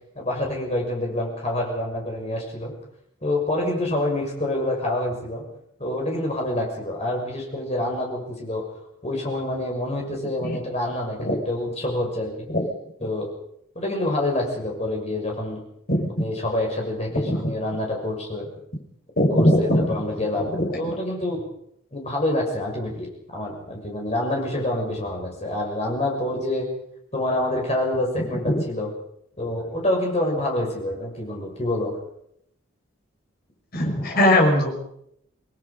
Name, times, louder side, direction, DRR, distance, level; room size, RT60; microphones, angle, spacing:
voice 1, 0.1-2.7 3.2-5.4 5.8-8.6 9.0-12.5 13.0-13.3 13.7-15.6 16.2-18.5 19.3-20.5 20.8-21.4 21.9-26.7 27.1-28.9 29.4-31.9, left 1 dB, 30° left, 0 dB, 6.6 m, -27 dB
voice 2, 19.2-19.9 20.6-20.7 33.7-34.9, left 1 dB, 45° left, 1 dB, 5.6 m, -20 dB
27.5 x 19.5 x 5.4 m, 0.74 s
head